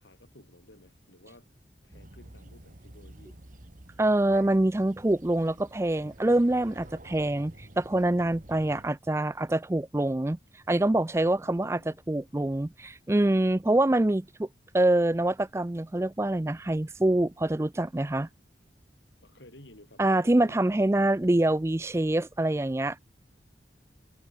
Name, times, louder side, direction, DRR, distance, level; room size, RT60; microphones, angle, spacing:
voice 1, 0.0-1.5 1.8-3.4 11.4-12.0 19.2-20.6, left 1 dB, 90° left, 5.8 m, -54 dB
sound 1, 1.9-8.9, right 1 dB, 45° right, 2.0 m, -50 dB
voice 2, 4.0-14.5 14.7-18.3 20.0-23.0, right 1 dB, 15° right, 0.4 m, -25 dB
head